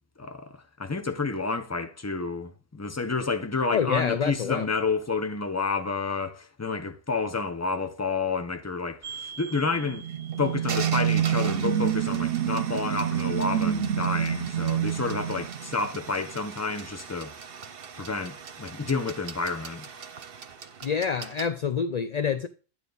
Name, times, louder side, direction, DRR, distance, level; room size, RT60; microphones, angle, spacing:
voice 1, 0.2-10.0 10.4-17.3 18.0-19.9, left 4 dB, 15° left, 0.8 m, -30 dB
voice 2, 3.7-4.7 20.8-22.5, left 6 dB, 45° left, 0.6 m, -27 dB
sound 1, 9.0-21.5, right 6 dB, 55° right, 1.1 m, -41 dB
sound 2, 9.6-16.2, right 10 dB, 75° right, 1.0 m, -27 dB
12.5 x 9.1 x 4.0 m
omnidirectional pair, 1.2 m